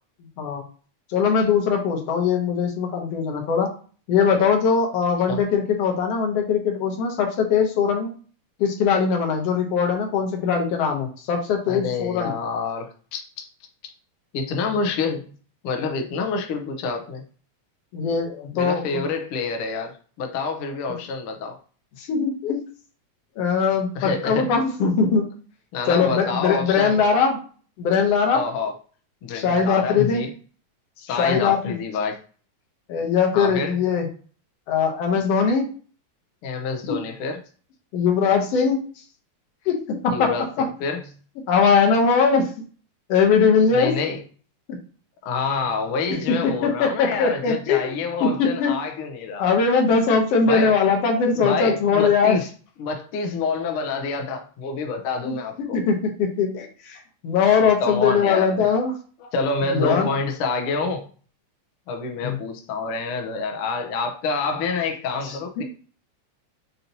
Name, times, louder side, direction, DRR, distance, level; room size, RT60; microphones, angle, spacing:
voice 1, 1.1-3.7 4.1-8.1 8.6-12.3 17.9-19.0 22.0-22.6 23.4-25.3 25.9-27.4 27.8-28.4 29.3-30.2 31.1-31.7 32.9-34.1 34.7-35.7 36.9-37.0 37.9-38.8 39.7-39.8 40.0-40.7 41.5-42.5 43.1-43.9 44.7-44.8 46.3-48.8 49.4-52.4 55.2-55.3 55.7-58.9 59.7-60.1 62.2-62.4 65.2-65.6, left 5 dB, 65° left, 2 dB, 1.7 m, -21 dB
voice 2, 11.7-13.2 14.3-15.3 15.6-17.2 18.5-21.6 23.9-24.5 25.7-27.0 28.3-28.8 29.2-30.3 31.0-32.2 33.3-33.8 36.4-37.4 40.1-41.1 43.7-44.2 45.2-49.5 50.5-50.8 51.4-52.5 52.8-55.8 57.5-58.6 59.2-61.0 61.9-65.6, left 4 dB, 85° left, 4 dB, 1.2 m, -27 dB
6.7 x 2.9 x 2.6 m, 0.40 s
omnidirectional pair, 3.4 m